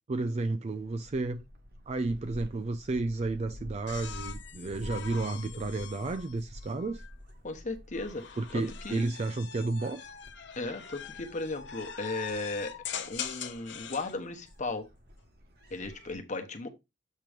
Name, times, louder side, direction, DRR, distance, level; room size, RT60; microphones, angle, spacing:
voice 1, 0.1-1.5 1.9-7.0 8.4-10.0, right 3 dB, 35° right, 0.4 m, -32 dB
Gull seagull, 0.7-16.2, equal, 55° right, 1.5 m, -50 dB
sound 1, 3.9-7.1 7.9-14.1 15.6-16.1, left 8 dB, 70° left, 0.8 m, -43 dB
voice 2, 7.4-9.0 10.6-12.8 13.1-14.9 15.7-16.7, left 3 dB, 40° left, 1.1 m, -36 dB
7.5 x 3.0 x 5.0 m
head